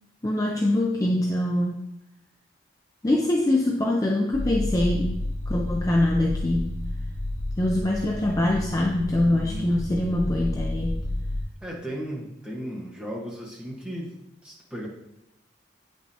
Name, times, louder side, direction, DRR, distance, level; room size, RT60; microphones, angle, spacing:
voice 1, 0.2-1.8 3.0-5.2 5.5-6.8 7.6-11.1, left 1 dB, 20° left, 0 dB, 0.4 m, -24 dB
sound 1, 4.3-11.4, left 1 dB, 40° left, 1.9 m, -31 dB
voice 2, 9.3-9.8 11.6-14.9, equal, 5° right, -5 dB, 1.2 m, -36 dB
8.4 x 5.3 x 2.8 m, 0.86 s
head